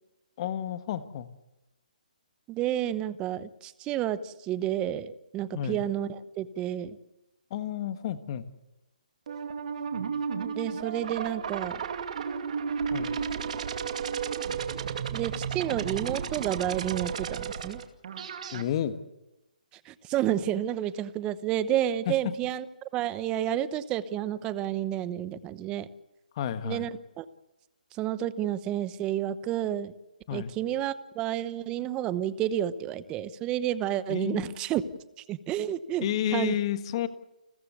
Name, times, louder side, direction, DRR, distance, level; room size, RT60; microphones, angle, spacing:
voice 1, 0.4-1.3 5.5-5.8 7.5-8.4 12.9-13.1 18.5-19.0 22.1-22.2 26.4-26.9 30.3-30.5 34.1-34.5 36.0-37.1, left 11 dB, 40° left, 11 dB, 1.5 m, -31 dB
voice 2, 2.5-7.0 10.3-11.8 15.1-17.8 19.9-22.7 22.9-25.9 26.6-26.9 27.2-27.3 28.0-29.9 30.3-34.8 35.3-36.1 36.3-36.6, right 11 dB, 20° right, 14 dB, 1.0 m, -30 dB
sound 1, 9.3-18.6, right 6 dB, 55° right, 2.4 m, -33 dB
29.5 x 14.5 x 8.1 m, 0.98 s
hypercardioid pair, 145°, 5 cm